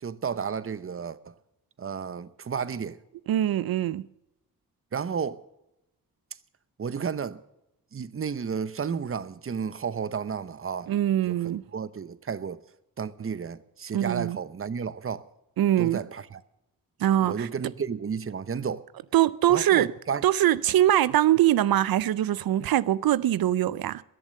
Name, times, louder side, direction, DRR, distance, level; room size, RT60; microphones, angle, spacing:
voice 1, 0.0-1.3 1.8-3.0 4.9-5.4 6.8-7.4 7.9-10.9 11.3-12.6 13.0-15.3 15.8-16.4 17.2-18.8 19.5-20.2, right 6 dB, 40° right, 0.8 m, -32 dB
voice 2, 3.3-4.0 10.9-11.6 13.9-14.4 15.6-16.0 17.0-17.5 19.1-19.9 20.2-24.0, right 12 dB, 80° right, 0.5 m, -23 dB
21.5 x 7.3 x 6.5 m
cardioid pair, 80°, 35 cm